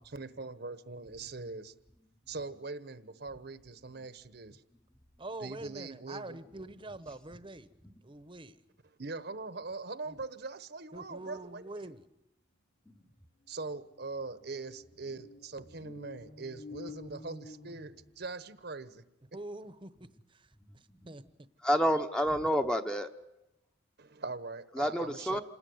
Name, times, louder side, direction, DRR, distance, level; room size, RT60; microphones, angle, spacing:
voice 1, 0.0-1.7 2.3-4.6 5.4-6.4 9.0-12.0 13.5-19.0 24.0-25.4, right 3 dB, 55° right, 12 dB, 1.1 m, -42 dB
voice 2, 5.2-7.7 8.0-8.6 10.1-10.2 10.9-12.1 19.3-20.5 20.7-21.2, right 2 dB, 25° right, 13 dB, 1.1 m, -45 dB
sound 1, 13.1-13.2 13.4-18.5, left 3 dB, 65° left, 3.2 m, -50 dB
voice 3, 21.6-23.1 24.7-25.4, equal, 5° left, 6 dB, 1.0 m, -29 dB
27.5 x 19.5 x 9.6 m, 0.91 s
head